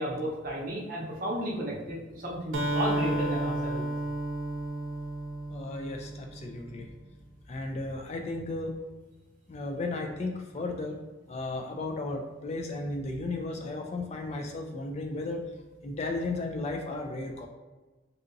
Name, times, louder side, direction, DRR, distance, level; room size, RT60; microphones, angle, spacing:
voice 1, 0.0-3.9, equal, 45° right, -3 dB, 0.7 m, -33 dB
Acoustic guitar, 2.5-6.4, right 1 dB, 90° right, 0.6 m, -32 dB
voice 2, 5.5-6.9 7.5-8.7 9.5-11.0 11.3-15.5 15.8-17.5, left 2 dB, 35° left, 3 dB, 0.3 m, -34 dB
3.7 x 2.7 x 2.5 m, 1.2 s
head